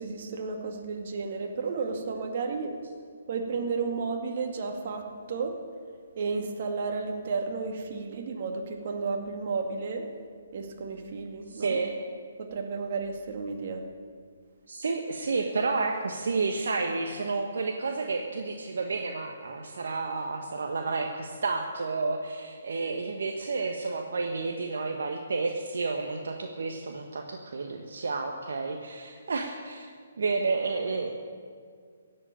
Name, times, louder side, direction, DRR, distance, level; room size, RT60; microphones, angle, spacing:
voice 1, 0.0-2.8 3.3-5.6 6.2-10.1 10.5-11.8 12.4-13.8, right 4 dB, 50° right, 3 dB, 2.2 m, -32 dB
voice 2, 11.5-12.0 14.7-29.9 30.2-31.1, right 4 dB, 70° right, 3 dB, 1.2 m, -31 dB
16.5 x 7.9 x 9.0 m, 2.1 s
figure-of-eight pair, 140°, 0 cm